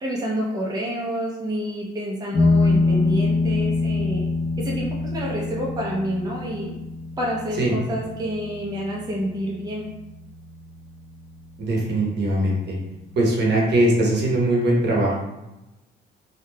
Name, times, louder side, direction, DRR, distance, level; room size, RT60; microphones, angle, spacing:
voice 1, 0.0-4.2 4.6-6.7 7.2-9.9, equal, 20° right, -3 dB, 0.6 m, -28 dB
sound 1, 2.3-11.4, left 3 dB, 5° left, 1.0 m, -25 dB
voice 2, 11.6-12.8 13.2-15.2, right 1 dB, 60° right, -3 dB, 0.9 m, -21 dB
3.2 x 2.3 x 2.2 m, 0.97 s
cardioid pair, 90°, 20 cm